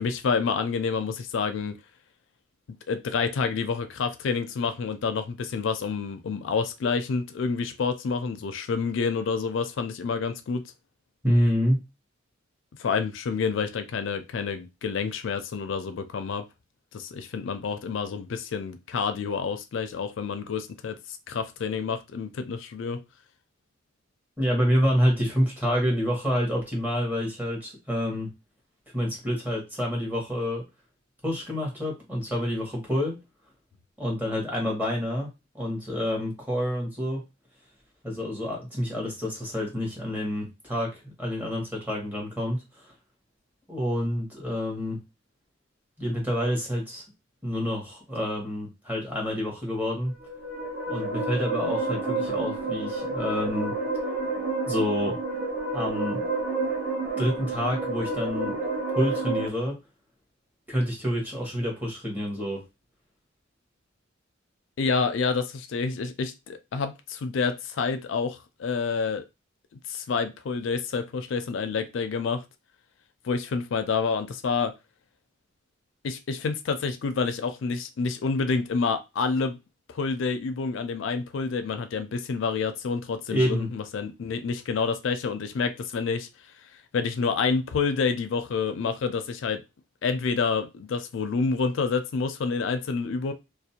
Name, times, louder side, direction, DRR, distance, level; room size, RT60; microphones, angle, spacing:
voice 1, 0.0-1.8 2.9-10.7 12.8-16.5 16.9-23.0 64.8-69.2 69.9-72.4 73.2-74.7 76.0-79.6 79.9-86.3 86.9-89.6 90.0-93.3, left 5 dB, 65° left, 0.4 m, -28 dB
voice 2, 11.2-11.8 24.4-28.3 28.9-30.6 31.2-33.2 34.0-35.3 35.5-37.2 38.0-42.6 43.7-45.0 46.0-47.0 47.4-50.1 50.9-53.8 54.7-55.2 55.7-56.2 57.2-58.6 58.9-59.7 60.7-62.6 83.3-83.7, equal, 10° right, 1.0 m, -28 dB
sound 1, 50.1-59.5, right 3 dB, 50° right, 0.7 m, -30 dB
2.4 x 2.0 x 2.7 m
head